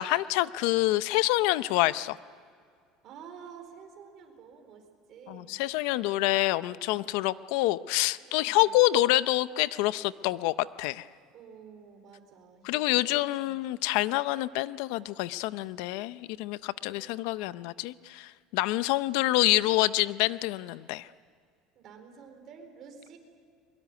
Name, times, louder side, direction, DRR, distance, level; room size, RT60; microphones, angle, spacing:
voice 1, 0.0-2.2 5.3-11.0 12.6-21.1, left 17 dB, 70° left, 16 dB, 0.6 m, -27 dB
voice 2, 3.0-5.6 6.6-7.3 8.2-8.8 11.3-13.8 16.8-17.3 19.2-19.4 21.7-23.2, right 6 dB, 40° right, 4 dB, 4.3 m, -51 dB
23.0 x 22.0 x 9.5 m, 2.2 s
cardioid pair, 155°, 0 cm